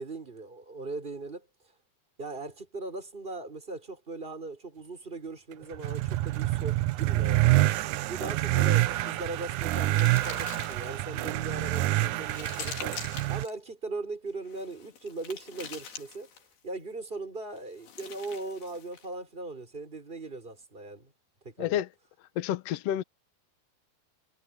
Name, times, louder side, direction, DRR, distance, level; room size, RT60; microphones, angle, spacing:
voice 1, 0.0-1.5 2.2-7.8 8.1-16.3 16.6-21.1 21.4-21.8, right 3 dB, 15° right, 5.1 m, -39 dB
sound 1, 5.6-13.4, right 16 dB, 75° right, 1.9 m, -27 dB
sound 2, 8.8-11.1 11.6-13.6 14.4-16.6 17.6-19.1, left 7 dB, 90° left, 5.0 m, -45 dB
voice 2, 21.6-21.9 22.3-23.0, left 12 dB, 75° left, 1.5 m, -29 dB
omnidirectional pair, 4.2 m